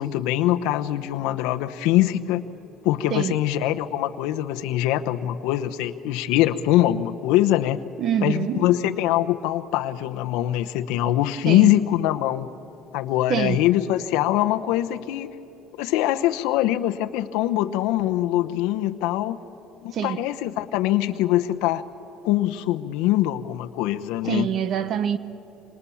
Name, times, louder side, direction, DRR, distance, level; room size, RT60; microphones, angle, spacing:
voice 1, 0.0-2.4 2.8-7.8 8.2-12.5 12.9-15.3 15.8-19.4 19.8-21.8 22.2-24.5, left 14 dB, 85° left, 0.9 m, -23 dB
voice 2, 8.0-8.7 11.5-11.7 13.3-13.7 19.9-20.2 24.2-25.2, right 8 dB, 45° right, 0.8 m, -25 dB
27.0 x 26.5 x 7.1 m
cardioid pair, 145°, 0 cm